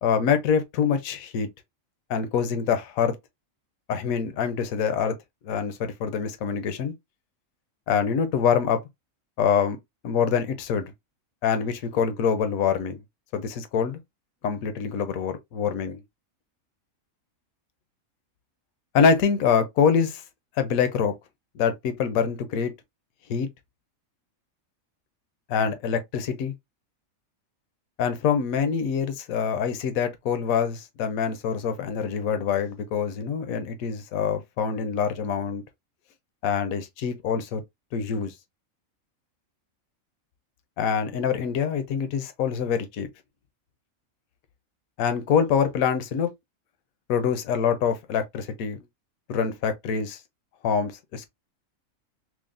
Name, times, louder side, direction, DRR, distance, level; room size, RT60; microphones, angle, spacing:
voice 1, 0.0-1.5 2.1-3.1 3.9-5.2 5.4-6.9 7.9-8.8 9.4-9.8 10.0-10.9 11.4-13.0 13.3-14.0 14.4-16.0 18.9-20.2 20.6-21.1 21.5-22.7 23.3-23.5 25.5-26.5 28.0-35.6 36.4-37.6 37.9-38.3 40.8-43.1 45.0-46.3 47.1-48.8 49.3-50.2 50.6-51.3, left 7 dB, 80° left, 1.1 m, -25 dB
6.1 x 2.1 x 2.5 m
omnidirectional pair, 1.4 m